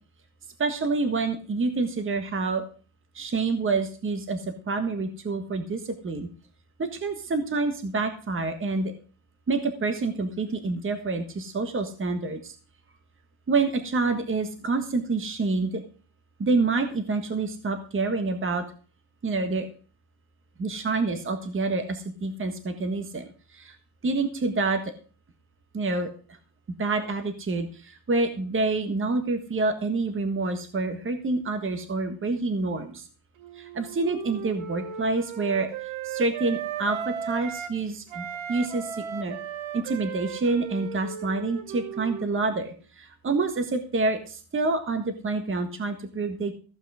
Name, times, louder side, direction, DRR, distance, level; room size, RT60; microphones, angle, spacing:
voice 1, 0.6-2.6 3.1-6.3 6.8-8.9 9.5-12.5 13.5-15.8 16.4-18.6 19.2-19.7 20.6-23.3 23.5-23.8 24.0-24.8 25.7-26.1 26.8-33.1 33.6-35.7 36.0-39.4 39.7-46.5, right 3 dB, 25° right, 7 dB, 1.5 m, -27 dB
Wind instrument woodwind instrument, 33.4-37.8 38.1-42.6, right 8 dB, 85° right, 1.5 m, -36 dB
14.5 x 8.9 x 4.9 m, 0.38 s
cardioid pair, 155°, 47 cm